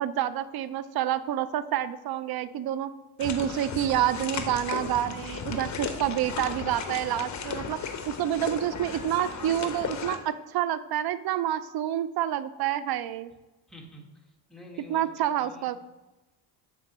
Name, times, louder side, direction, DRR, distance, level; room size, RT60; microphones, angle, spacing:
voice 1, 0.0-2.9 3.2-7.8 8.1-13.3 14.9-15.8, right 11 dB, 50° right, 14 dB, 0.5 m, -28 dB
sound 1, 3.2-10.2, left 6 dB, 35° left, 0.9 m, -35 dB
voice 2, 13.7-14.1 14.5-15.0 15.4-15.8, equal, ahead, -1 dB, 1.7 m, -47 dB
8.9 x 4.4 x 3.0 m, 1.1 s
supercardioid pair, 80°, 49 cm